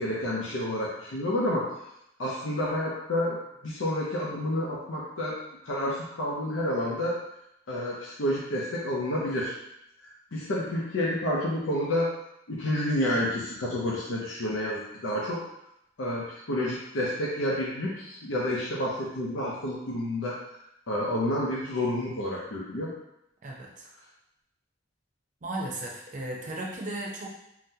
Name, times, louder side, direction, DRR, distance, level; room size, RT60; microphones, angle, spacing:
voice 1, 0.0-1.7 2.2-3.4 3.6-5.4 5.6-7.2 7.7-9.5 10.0-12.1 12.5-15.4 16.0-20.4 20.9-22.9, left 1 dB, 90° left, -5 dB, 0.6 m, -29 dB
voice 2, 23.4-23.9 25.4-27.3, right 1 dB, 45° right, -2 dB, 0.6 m, -35 dB
3.8 x 2.1 x 2.7 m, 0.81 s
head